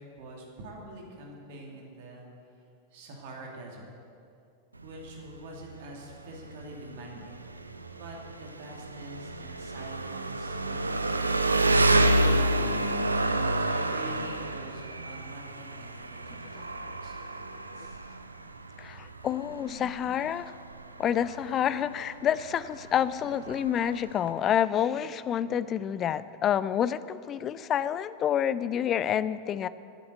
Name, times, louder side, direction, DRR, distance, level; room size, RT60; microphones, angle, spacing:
voice 1, 0.0-2.3 2.9-3.9 4.8-7.5 7.9-13.1 13.6-18.0, right 1 dB, 50° right, -1 dB, 2.4 m, -46 dB
Engine, 4.7-24.3, right 1 dB, 80° right, 0.5 m, -29 dB
voice 2, 18.8-20.5 21.0-29.7, left 9 dB, 30° left, 16 dB, 0.4 m, -28 dB
12.0 x 7.9 x 8.2 m, 2.4 s
figure-of-eight pair, 90°, 0 cm